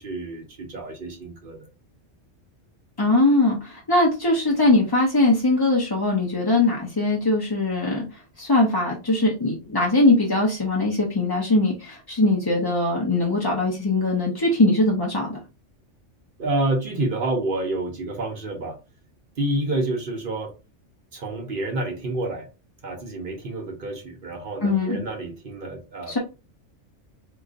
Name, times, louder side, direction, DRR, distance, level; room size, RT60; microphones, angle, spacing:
voice 1, 0.0-1.6 16.4-18.8 19.4-20.5 21.1-22.5 22.8-26.2, right 2 dB, 50° right, 2 dB, 0.9 m, -28 dB
voice 2, 3.0-8.0 8.4-15.4 24.6-25.0 26.1-26.2, left 2 dB, 25° left, -2 dB, 0.5 m, -21 dB
3.8 x 2.8 x 2.4 m, 0.29 s
omnidirectional pair, 1.2 m